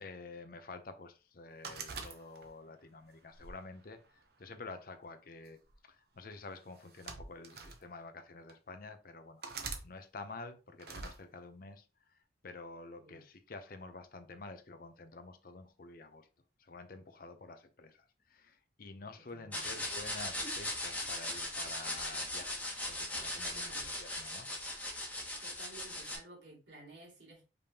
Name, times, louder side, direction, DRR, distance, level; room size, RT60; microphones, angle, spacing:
voice 1, 0.0-5.6 5.8-12.2 12.4-16.3 16.6-22.5 22.9-23.7 24.0-24.7, left 3 dB, 55° left, 0.6 m, -49 dB
sound 1, 1.6-2.7 3.3-4.5 5.5-5.7 6.7-7.8 8.5-8.6 9.4-9.9 10.8-11.2, right 4 dB, 60° right, 0.8 m, -44 dB
voice 2, 19.3-19.8 23.5-23.9 25.4-27.5, right 2 dB, 90° right, 2.4 m, -55 dB
sound 2, 19.5-26.2, left 1 dB, 10° left, 1.2 m, -39 dB
5.2 x 3.4 x 2.8 m
head